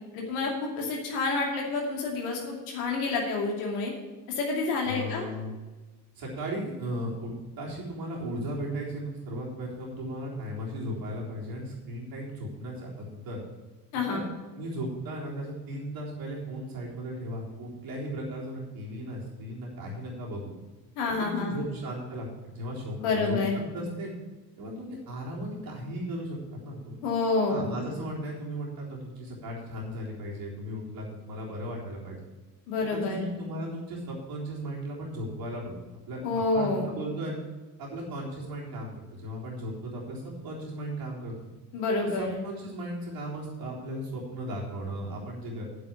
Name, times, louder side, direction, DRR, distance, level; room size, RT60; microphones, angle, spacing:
voice 1, 0.1-3.9 4.3-5.2 13.9-14.2 21.0-21.6 23.0-23.6 27.0-27.8 32.7-33.3 36.2-36.9 41.7-42.4, left 3 dB, 65° left, 0 dB, 2.6 m, -28 dB
voice 2, 4.8-5.5 6.2-13.4 14.1-20.5 21.2-24.1 24.6-27.0 27.5-32.2 32.9-35.7 36.1-37.4 37.8-41.3 42.2-45.6, equal, 45° right, -3 dB, 3.8 m, -36 dB
8.6 x 7.7 x 7.4 m, 1.2 s
figure-of-eight pair, 55°, 48 cm